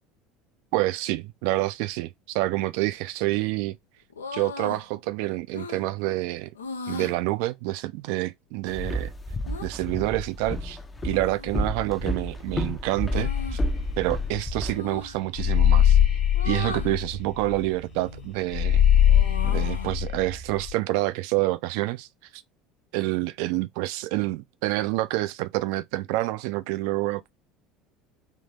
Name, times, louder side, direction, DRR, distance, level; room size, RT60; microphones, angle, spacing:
voice 1, 0.7-3.8 4.3-6.5 6.9-9.1 9.6-13.6 14.0-16.0 16.4-18.8 19.4-22.1 22.3-22.4 22.9-27.3, right 18 dB, 60° right, 0.3 m, -27 dB
sound 1, 4.1-4.8 5.5-5.8 6.6-7.2 9.5-9.7 11.1-11.7 13.0-13.6 14.7-15.2 16.3-17.0 17.8-18.3 18.7-20.0, left 5 dB, 80° left, 0.5 m, -38 dB
Walk footsteps, 8.7-14.8, left 1 dB, 15° left, 0.5 m, -30 dB
sound 2, 13.2-20.7, left 10 dB, 40° left, 1.3 m, -22 dB
3.6 x 2.7 x 2.7 m
figure-of-eight pair, 65°, 0 cm